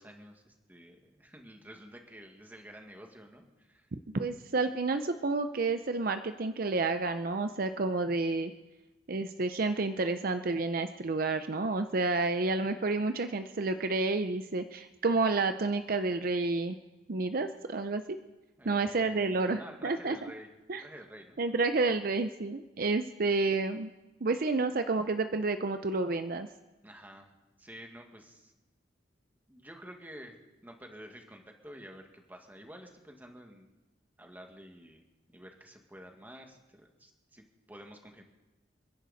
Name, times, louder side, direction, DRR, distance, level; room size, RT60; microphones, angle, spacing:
voice 1, 0.0-3.9 18.6-21.4 26.8-27.3 27.6-28.5 29.5-33.7 34.2-38.2, equal, 10° right, 3 dB, 1.8 m, -50 dB
voice 2, 4.1-8.5 9.1-16.8 17.1-18.0 18.6-20.2 20.7-20.8 21.4-23.9 24.2-26.5, right 3 dB, 55° right, 9 dB, 0.6 m, -30 dB
29.0 x 10.5 x 4.1 m, 1.1 s
head